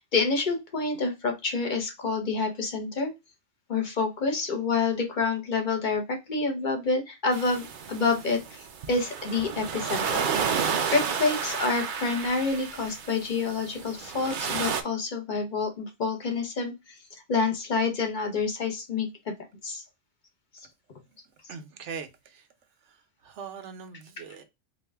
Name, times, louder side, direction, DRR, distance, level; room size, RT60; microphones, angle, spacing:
voice 1, 0.0-3.1 3.7-10.6 10.9-17.0 17.3-19.3 19.6-19.8, left 4 dB, 45° left, 1.1 m, -28 dB
sound 1, 7.3-14.8, right 6 dB, 55° right, 0.6 m, -31 dB
voice 2, 21.5-22.4 23.2-24.4, right 6 dB, 80° right, 1.1 m, -41 dB
4.2 x 2.4 x 3.3 m
omnidirectional pair, 1.2 m